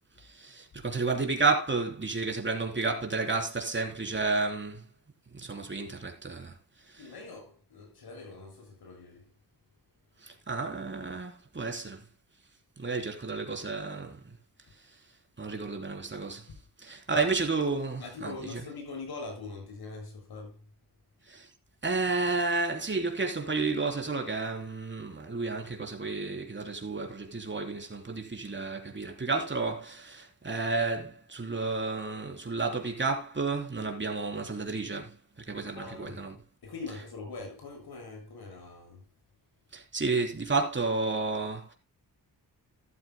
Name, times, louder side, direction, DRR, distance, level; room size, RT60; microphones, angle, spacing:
voice 1, 0.2-4.9 5.3-7.1 10.2-12.0 12.8-14.4 14.7-15.0 15.4-16.5 16.8-18.6 21.2-21.5 21.8-36.4 39.7-41.7, right 3 dB, 30° right, 3.5 m, -31 dB
voice 2, 6.9-9.4 16.5-16.6 16.9-17.3 18.0-20.7 35.8-36.2 36.6-39.1, left 3 dB, 75° left, 6.9 m, -43 dB
13.5 x 12.5 x 2.2 m
wide cardioid pair, 100°, 37 cm